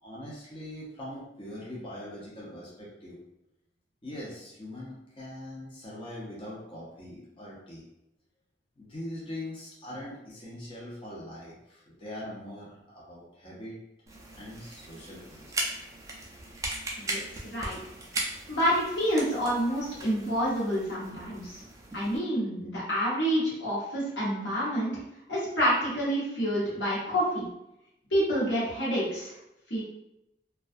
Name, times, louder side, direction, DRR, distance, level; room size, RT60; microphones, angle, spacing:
voice 1, 0.0-3.2 4.0-7.9 8.8-13.8 14.3-15.6 20.9-21.0, left 1 dB, 30° left, -6 dB, 0.6 m, -42 dB
sound 1, 14.1-22.2, right 2 dB, 20° right, 0.3 m, -38 dB
voice 2, 17.0-17.8 18.5-21.6 21.9-25.0 25.3-27.5 28.1-29.3 29.7-29.8, equal, 85° left, -7 dB, 1.1 m, -28 dB
2.3 x 2.2 x 2.5 m, 0.85 s
head